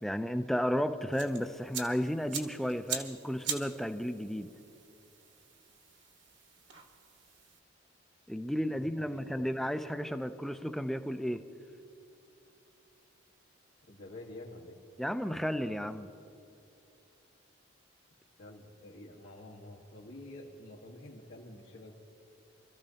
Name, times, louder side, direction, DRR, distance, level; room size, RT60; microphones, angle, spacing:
voice 1, 0.0-4.5 8.3-11.5 15.0-16.1, equal, ahead, 9 dB, 0.4 m, -33 dB
sound 1, 1.1-7.6, right 7 dB, 65° right, 1.4 m, -43 dB
voice 2, 8.7-9.5 13.9-14.8 18.4-21.9, left 1 dB, 90° left, -7 dB, 1.5 m, -49 dB
25.5 x 14.0 x 2.9 m, 2.8 s
head